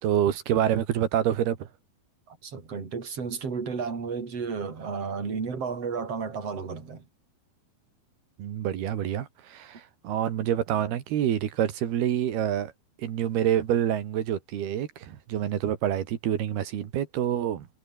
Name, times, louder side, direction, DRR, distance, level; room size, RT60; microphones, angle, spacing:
voice 1, 0.0-1.7 8.4-12.7 13.0-17.7, right 10 dB, 85° right, 4.1 m, -27 dB
voice 2, 2.3-7.1, right 5 dB, 40° right, 5.2 m, -33 dB
omnidirectional pair, 4.5 m